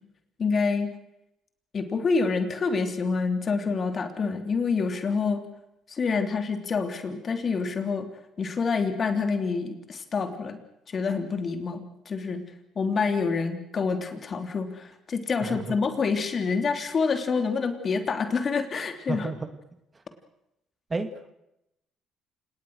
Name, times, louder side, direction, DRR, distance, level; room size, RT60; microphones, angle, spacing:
voice 1, 0.4-0.9 1.7-5.4 5.9-8.1 8.4-10.6 10.9-12.4 12.7-19.3, left 4 dB, 45° left, 7 dB, 3.3 m, -27 dB
voice 2, 15.4-15.8 19.1-19.5 20.9-21.3, right 3 dB, 30° right, 9 dB, 2.5 m, -32 dB
29.0 x 19.0 x 6.5 m, 0.85 s
hypercardioid pair, 50°, 0 cm